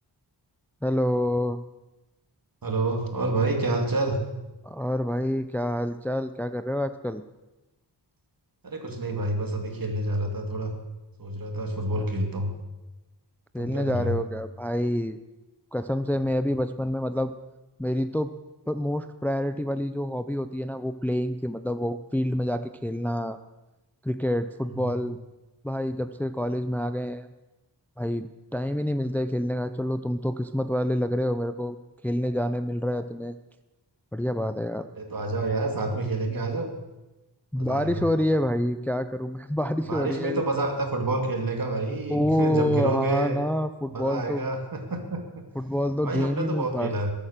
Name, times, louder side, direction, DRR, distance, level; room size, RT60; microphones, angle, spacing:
voice 1, 0.8-1.6 4.6-7.2 13.5-15.2 15.7-17.3 17.8-18.3 18.7-23.4 24.0-25.2 25.6-27.3 28.0-31.8 32.0-33.3 34.1-34.9 37.5-40.4 42.1-44.5 45.6-46.9, left 1 dB, 5° left, 11 dB, 0.5 m, -27 dB
voice 2, 2.6-4.2 8.6-10.7 11.2-12.5 13.6-14.1 24.8-24.9 34.9-36.7 37.5-38.0 39.9-43.4 43.9-45.5 46.0-47.1, right 2 dB, 55° right, 3 dB, 2.7 m, -28 dB
21.0 x 8.8 x 6.7 m, 1.0 s
wide cardioid pair, 110°, 42 cm